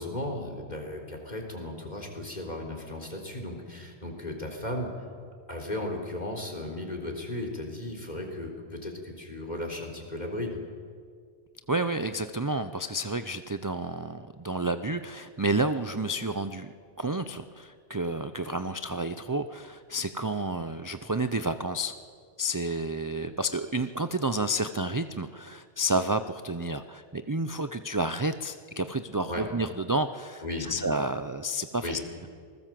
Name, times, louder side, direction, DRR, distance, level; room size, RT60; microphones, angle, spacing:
voice 1, 0.0-5.0 5.5-10.6 29.3-29.5 30.4-30.7 31.8-32.0, left 1 dB, 40° left, 1 dB, 4.0 m, -35 dB
voice 2, 11.7-16.7 17.0-22.0 22.4-32.0, right 1 dB, 25° right, 10 dB, 0.6 m, -30 dB
27.0 x 20.0 x 7.7 m, 2.1 s
omnidirectional pair, 1.1 m